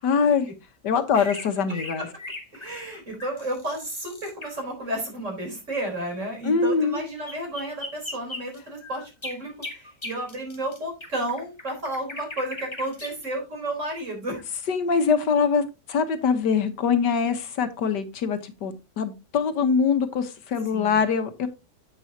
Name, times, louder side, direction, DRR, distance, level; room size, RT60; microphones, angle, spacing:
voice 1, 0.0-0.5 0.8-2.1 6.4-7.0 14.7-21.5, left 5 dB, 85° left, 9 dB, 1.8 m, -23 dB
sound 1, 1.2-4.5 7.0-7.1 7.3-13.2, left 2 dB, 20° left, 1.3 m, -38 dB
voice 2, 2.5-14.4 20.7-21.0, right 1 dB, 45° right, 1 dB, 4.5 m, -32 dB
10.0 x 8.3 x 2.9 m, 0.26 s
omnidirectional pair, 1.8 m